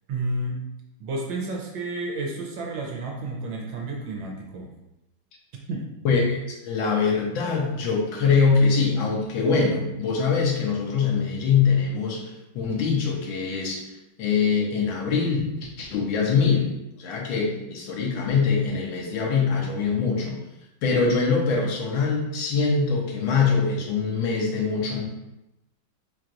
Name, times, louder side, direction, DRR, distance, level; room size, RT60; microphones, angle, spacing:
voice 1, 0.1-0.6 1.0-4.7 5.7-5.9, right 2 dB, 75° right, 0 dB, 1.4 m, -31 dB
voice 2, 6.1-13.8 14.2-16.7 17.0-20.4 20.8-25.0, left 5 dB, 80° left, -1 dB, 1.7 m, -23 dB
4.5 x 4.5 x 2.5 m, 0.94 s
omnidirectional pair, 2.2 m